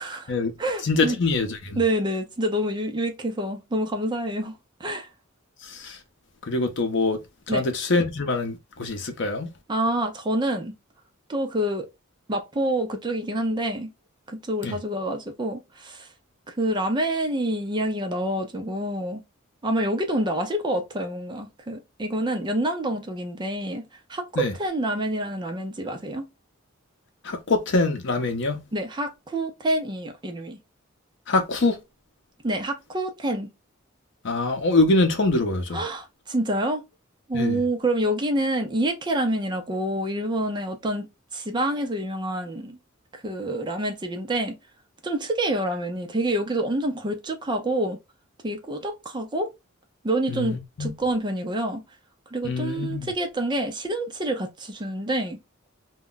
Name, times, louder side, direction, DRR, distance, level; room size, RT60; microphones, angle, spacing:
voice 1, 0.0-0.3 0.6-1.2 1.8-4.5 4.8-5.1 7.5-7.6 9.7-10.7 11.3-11.9 12.3-13.9 14.3-16.1 16.5-19.2 19.6-23.8 24.1-26.3 28.7-30.6 32.4-33.5 35.7-36.8 37.3-41.1 41.3-42.8 43.1-44.6 45.0-48.0 48.4-49.5 50.0-51.8 52.3-55.4, right 1 dB, 20° right, 0.5 m, -27 dB
voice 2, 0.8-1.8 5.6-6.0 6.5-7.2 7.5-9.5 14.6-14.8 24.4-24.5 27.2-28.6 31.3-31.8 34.2-35.8 37.3-37.6 50.3-50.9 52.4-53.1, left 3 dB, 60° left, 0.7 m, -24 dB
2.2 x 2.1 x 3.8 m
head